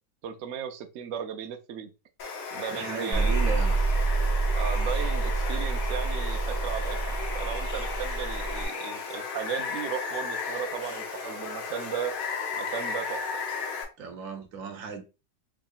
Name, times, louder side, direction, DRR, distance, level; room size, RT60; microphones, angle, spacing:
voice 1, 0.2-1.9 2.5-3.4 4.6-7.0 7.3-12.1 12.6-13.2, right 8 dB, 85° right, 0.6 m, -36 dB
Water, 2.2-13.8, left 5 dB, 60° left, 1.1 m, -35 dB
voice 2, 2.7-3.8 14.0-15.0, right 6 dB, 60° right, 1.0 m, -36 dB
sound 1, 3.1-8.6, right 3 dB, 30° left, 0.7 m, -27 dB
4.7 x 2.8 x 2.3 m
omnidirectional pair, 1.9 m